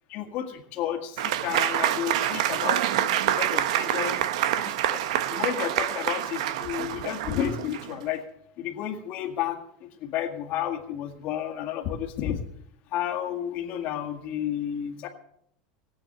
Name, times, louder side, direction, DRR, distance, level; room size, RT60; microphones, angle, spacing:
voice 1, 0.1-4.2 4.6-5.0 5.3-8.2 8.6-12.4 12.9-15.1, left 10 dB, 45° left, 4 dB, 1.9 m, -32 dB
Applause / Crowd, 1.2-8.0, right 12 dB, 80° right, 0.8 m, -27 dB
18.5 x 8.4 x 6.6 m, 0.73 s
supercardioid pair, 160°, 3 cm